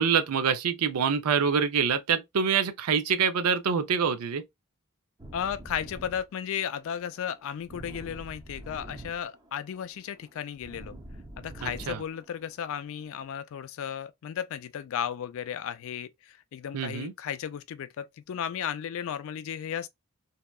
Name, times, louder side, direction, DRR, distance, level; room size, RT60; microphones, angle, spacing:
voice 1, 0.0-4.4 11.6-12.0 16.7-17.1, right 6 dB, 80° right, 0.5 m, -26 dB
sound 1, 5.2-13.2, right 1 dB, 20° right, 0.5 m, -46 dB
voice 2, 5.3-11.0 11.4-19.9, left 8 dB, 60° left, 0.3 m, -34 dB
2.7 x 2.2 x 2.2 m
head